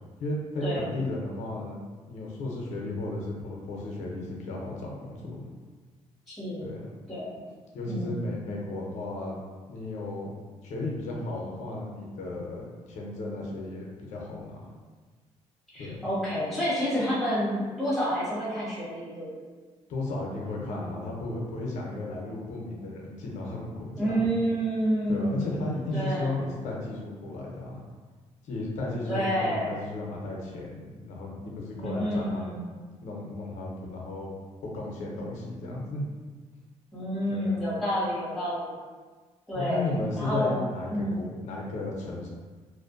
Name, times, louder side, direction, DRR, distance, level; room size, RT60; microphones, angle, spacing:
voice 1, 0.2-5.4 6.6-6.8 7.7-9.4 9.7-10.3 10.6-14.7 15.8-16.0 19.9-24.3 25.1-27.8 28.4-32.5 33.0-34.3 34.6-36.0 37.3-37.6 39.5-42.3, left 2 dB, 75° left, -2 dB, 0.6 m, -34 dB
voice 2, 6.3-6.7 7.1-7.4 7.9-8.2 15.7-19.3 24.0-26.3 29.1-29.7 31.8-32.6 36.9-38.8 39.5-39.9 40.1-40.6 40.9-41.3, equal, ahead, -10 dB, 1.2 m, -29 dB
2.5 x 2.1 x 2.5 m, 1.4 s
cardioid pair, 105°, 12 cm